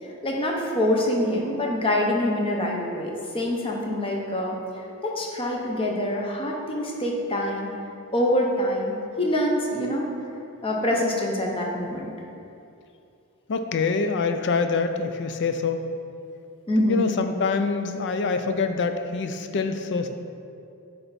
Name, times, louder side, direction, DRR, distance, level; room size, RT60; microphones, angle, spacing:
voice 1, 0.2-7.7 8.1-10.1 10.6-12.1 16.7-17.0, left 1 dB, 25° left, -1 dB, 0.8 m, -25 dB
voice 2, 13.5-15.8 16.8-20.1, left 4 dB, 55° left, 8 dB, 0.4 m, -25 dB
10.0 x 3.4 x 4.1 m, 2.6 s
head